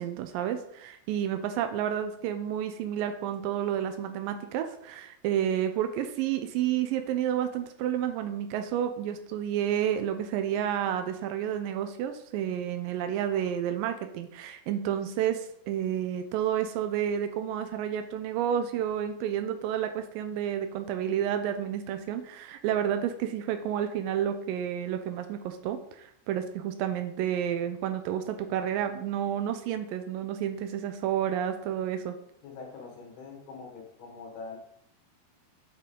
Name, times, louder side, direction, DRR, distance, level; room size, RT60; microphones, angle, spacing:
voice 1, 0.0-32.2, right 10 dB, 85° right, 7 dB, 2.0 m, -30 dB
voice 2, 32.4-34.6, left 4 dB, 80° left, 1 dB, 3.5 m, -43 dB
9.1 x 5.2 x 3.7 m, 0.70 s
omnidirectional pair, 4.6 m